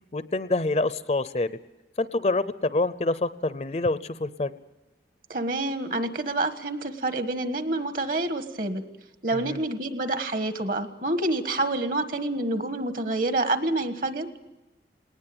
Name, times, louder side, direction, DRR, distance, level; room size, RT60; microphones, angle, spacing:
voice 1, 0.1-1.5 2.0-4.5 9.5-9.6, left 2 dB, 35° left, 14 dB, 0.6 m, -26 dB
voice 2, 5.3-8.8 9.2-14.3, right 2 dB, 50° right, 9 dB, 1.5 m, -27 dB
19.5 x 19.0 x 8.7 m, 1.0 s
head